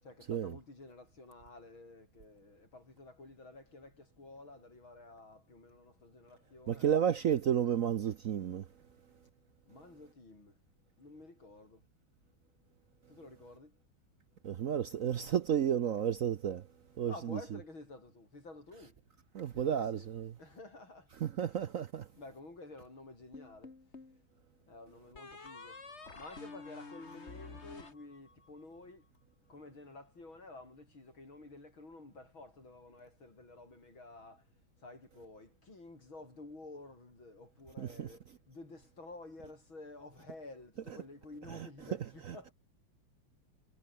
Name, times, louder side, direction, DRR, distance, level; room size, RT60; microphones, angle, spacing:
voice 1, 0.0-7.0 9.7-10.6 11.0-11.8 13.1-13.8 17.0-19.0 19.5-20.1 20.4-21.1 22.1-23.7 24.7-25.8 26.1-29.1 29.5-34.5 34.8-42.5, left 2 dB, 90° left, 8.2 m, -52 dB
voice 2, 6.7-8.7 14.4-16.7 17.0-17.4 19.3-20.3 21.2-22.1 37.8-38.1 41.5-41.7, right 9 dB, 60° right, 0.9 m, -32 dB
sound 1, 23.3-24.2 25.1-28.6, left 3 dB, 35° left, 2.9 m, -49 dB
omnidirectional pair, 2.1 m